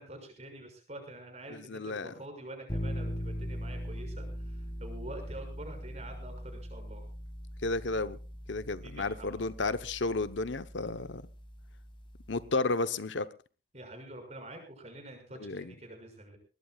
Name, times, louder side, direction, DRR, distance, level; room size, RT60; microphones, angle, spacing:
voice 1, 0.0-7.1 8.8-9.4 13.7-16.4, right 1 dB, 35° right, 6.0 m, -46 dB
voice 2, 1.5-2.1 7.6-8.2 8.5-11.2 12.3-13.3 15.4-15.7, left 3 dB, 80° left, 1.0 m, -32 dB
sound 1, 2.7-12.5, equal, 25° left, 2.0 m, -41 dB
22.0 x 19.5 x 2.4 m
head